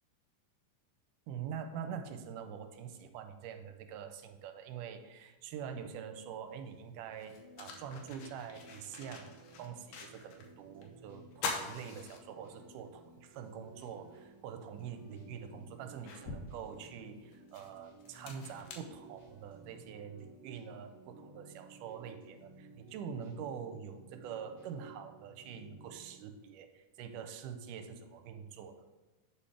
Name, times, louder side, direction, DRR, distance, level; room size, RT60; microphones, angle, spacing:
voice 1, 1.3-28.9, right 7 dB, 80° right, 7 dB, 2.1 m, -45 dB
sound 1, 6.5-6.6 7.1-10.5 10.8-10.9 11.3-12.8 13.3-13.4 14.8-14.9 15.4-19.6, left 4 dB, 75° left, 2.2 m, -44 dB
sound 2, 7.3-26.2, right 2 dB, 45° left, 0.4 m, -57 dB
8.2 x 5.4 x 3.3 m, 1.2 s
omnidirectional pair, 3.8 m